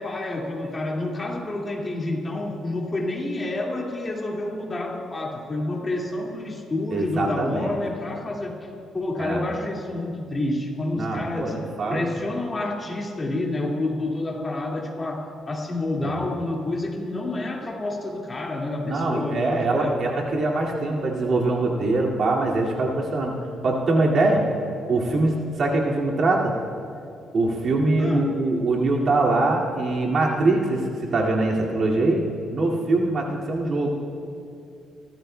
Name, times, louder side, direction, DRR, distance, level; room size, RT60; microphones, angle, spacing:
voice 1, 0.0-8.7 8.9-11.5 11.9-20.0 28.0-28.3, left 2 dB, 30° left, -1 dB, 2.1 m, -29 dB
voice 2, 6.9-7.8 9.2-9.4 10.9-12.0 16.0-16.3 18.8-23.4 23.6-24.4 24.9-26.5 27.3-32.2 32.5-33.9, right 2 dB, 55° right, -2 dB, 2.2 m, -23 dB
25.5 x 13.5 x 2.2 m, 2.5 s
cardioid pair, 90°, 0 cm